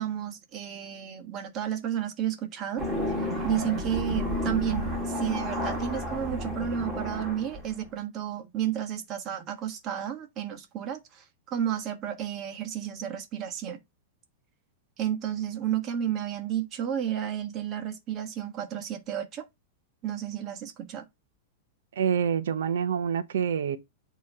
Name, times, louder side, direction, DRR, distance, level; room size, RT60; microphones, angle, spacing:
voice 1, 0.0-13.8 15.0-19.4 20.0-21.0, right 10 dB, 30° right, 1.4 m, -32 dB
sound 1, 2.8-7.9, left 1 dB, 10° right, 1.9 m, -31 dB
voice 2, 22.0-23.8, right 7 dB, 90° right, 0.8 m, -26 dB
8.6 x 3.1 x 5.5 m
supercardioid pair, 160°, 0 cm